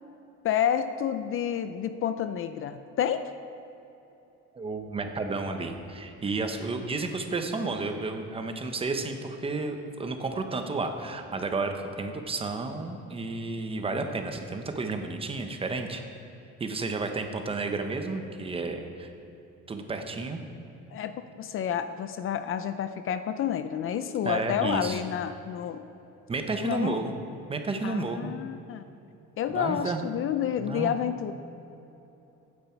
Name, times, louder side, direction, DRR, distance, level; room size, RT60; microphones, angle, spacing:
voice 1, 0.4-3.2 20.9-25.8 26.6-27.0 27.8-28.8 29.4-31.3, left 9 dB, 45° left, 10 dB, 0.5 m, -29 dB
voice 2, 4.5-16.0 16.6-19.1 19.7-20.4 24.2-25.0 26.3-27.2 27.5-28.3 29.5-30.0 30.6-30.9, right 3 dB, 20° right, 6 dB, 0.9 m, -32 dB
15.5 x 9.6 x 4.5 m, 3.0 s
cardioid pair, 155°, 29 cm